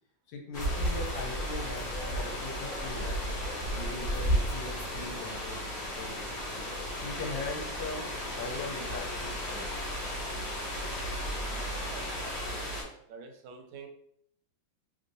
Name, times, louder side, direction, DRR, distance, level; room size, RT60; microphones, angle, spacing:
voice 1, 0.3-3.4 3.7-5.7 6.0-6.4 7.0-9.9, left 3 dB, 75° left, 1 dB, 1.3 m, -40 dB
sound 1, 0.5-12.8, equal, 35° left, 0.9 m, -34 dB
voice 2, 11.7-12.7 13.1-13.9, right 5 dB, 90° right, 5 dB, 1.4 m, -48 dB
3.4 x 2.6 x 2.6 m, 0.71 s
omnidirectional pair, 2.2 m